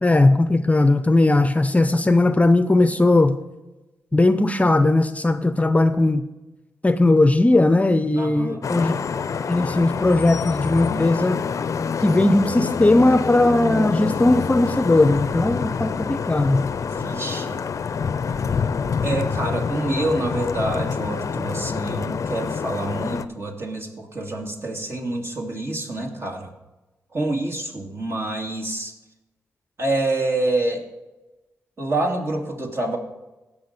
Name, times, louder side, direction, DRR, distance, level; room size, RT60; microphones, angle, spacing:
voice 1, 0.0-3.4 4.1-6.2 6.8-9.0 9.5-11.4 12.0-16.7, left 2 dB, 25° left, 11 dB, 0.7 m, -18 dB
voice 2, 8.2-8.6 16.9-17.6 19.0-26.5 27.1-28.9 29.8-30.9 31.8-33.0, right 2 dB, 45° right, 2 dB, 2.7 m, -27 dB
Vehicle horn car horn honking / Traffic noise roadway noise, 8.6-23.3, left 6 dB, 60° left, 0.6 m, -26 dB
17.0 x 6.2 x 4.4 m, 1.1 s
supercardioid pair, 45°, 6 cm